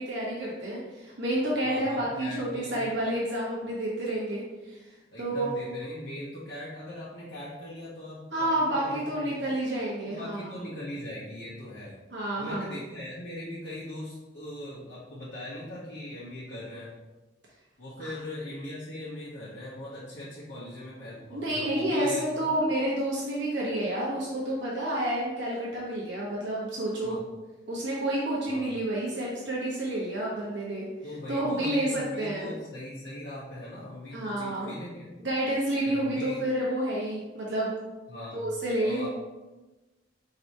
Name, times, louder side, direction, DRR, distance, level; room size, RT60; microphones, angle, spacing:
voice 1, 0.0-4.4 4.7-4.9 5.2-5.6 8.3-10.5 12.1-12.7 18.0-18.1 21.3-27.2 27.7-30.9 31.3-32.5 34.1-34.7 35.2-37.7 38.3-39.1, right 1 dB, 70° right, -5 dB, 1.1 m, -29 dB
voice 2, 1.6-2.9 5.1-9.5 10.1-11.9 12.4-16.9 17.8-22.5 27.0-27.2 28.5-28.6 31.0-35.1 35.9-36.4 38.1-38.5 38.8-39.1, left 1 dB, 80° left, -11 dB, 1.3 m, -40 dB
4.6 x 3.9 x 2.8 m, 1.1 s
head